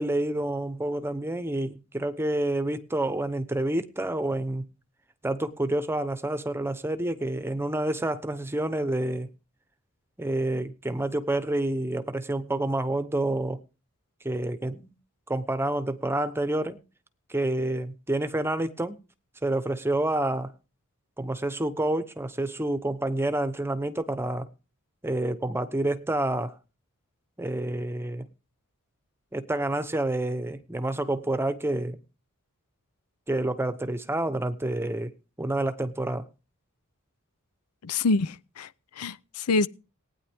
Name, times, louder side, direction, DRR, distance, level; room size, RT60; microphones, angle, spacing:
voice 1, 0.0-4.7 5.2-9.3 10.2-13.6 14.2-14.9 15.3-16.8 17.3-19.0 19.4-20.5 21.2-24.5 25.0-26.6 27.4-28.3 29.3-32.0 33.3-35.1 35.4-36.3, right 1 dB, 10° right, 0.8 m, -28 dB
voice 2, 37.8-38.7 39.0-39.7, left 3 dB, 85° left, 0.6 m, -26 dB
19.0 x 9.6 x 3.5 m
head